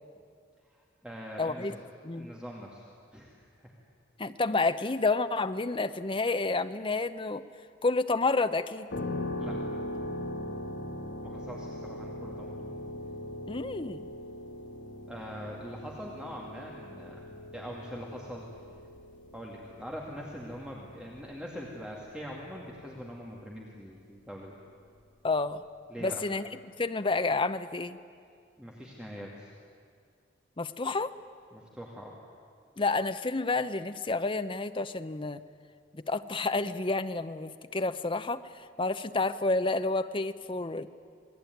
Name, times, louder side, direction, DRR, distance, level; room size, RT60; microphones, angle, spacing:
voice 1, 0.7-1.8 2.1-2.8 3.1-3.7 9.4-9.6 11.2-12.6 15.1-17.2 17.5-18.5 19.3-24.5 25.9-26.2 28.6-29.5 31.5-32.2, equal, 5° right, -2 dB, 2.3 m, -43 dB
voice 2, 1.4-1.8 2.0-2.3 4.2-7.4 7.8-8.9 13.5-14.1 25.2-25.6 26.0-26.5 26.8-28.0 30.6-31.1 32.8-35.4 35.9-40.9, left 3 dB, 25° left, 10 dB, 0.8 m, -30 dB
sound 1, 8.9-23.6, left 1 dB, 75° left, 2.4 m, -41 dB
27.5 x 20.0 x 9.4 m, 2.2 s
head